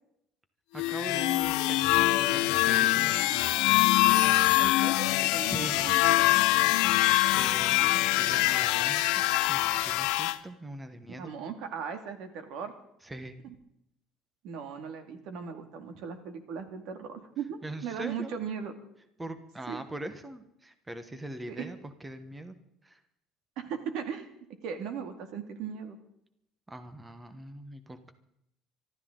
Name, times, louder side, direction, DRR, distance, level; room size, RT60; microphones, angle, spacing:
voice 1, 0.7-3.2 5.5-5.9 7.3-11.3 13.0-13.4 17.6-18.4 19.2-22.6 22.8-23.0 26.7-28.1, right 1 dB, 10° right, 9 dB, 1.2 m, -42 dB
sound 1, 0.8-10.4, left 17 dB, 90° left, 0.7 m, -24 dB
voice 2, 4.6-6.3 11.1-12.7 13.4-13.5 14.4-18.7 19.7-19.8 21.5-21.7 23.6-24.3 24.6-26.0, right 7 dB, 65° right, 7 dB, 2.3 m, -38 dB
25.0 x 13.0 x 3.9 m, 0.76 s
cardioid pair, 140°, 0 cm